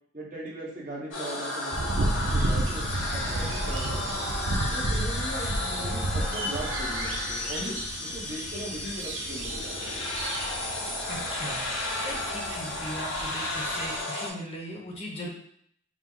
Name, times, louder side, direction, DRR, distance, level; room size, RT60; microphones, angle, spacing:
voice 1, 0.1-4.3 4.7-9.8, right 1 dB, 45° right, -3 dB, 1.1 m, -39 dB
sound 1, 1.1-14.3, left 2 dB, 80° left, 1.2 m, -33 dB
sound 2, 1.7-14.0, right 1 dB, 85° right, 0.7 m, -32 dB
voice 2, 11.1-11.7 12.0-15.3, equal, 35° left, -2 dB, 0.9 m, -38 dB
4.8 x 2.2 x 3.8 m, 0.65 s
head